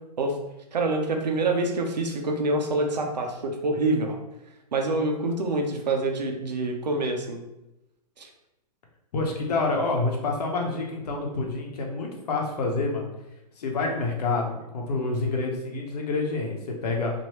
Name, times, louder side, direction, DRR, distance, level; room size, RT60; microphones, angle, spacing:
voice 1, 0.7-4.2 4.7-7.4 8.2-8.3, right 2 dB, 85° right, 3 dB, 0.7 m, -26 dB
voice 2, 9.1-13.1 13.6-17.1, left 3 dB, 70° left, 0 dB, 0.9 m, -28 dB
3.0 x 2.6 x 2.9 m, 0.91 s
hypercardioid pair, 130°, 21 cm